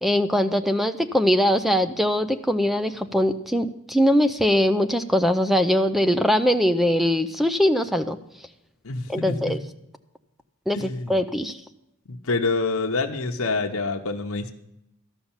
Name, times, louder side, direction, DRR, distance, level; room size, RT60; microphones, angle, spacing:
voice 1, 0.0-8.2 9.1-9.6 10.7-11.6, equal, ahead, 10 dB, 0.4 m, -21 dB
voice 2, 8.8-9.5 10.7-11.1 12.1-14.5, left 3 dB, 75° left, 2 dB, 1.0 m, -27 dB
13.5 x 5.7 x 8.8 m, 0.83 s
head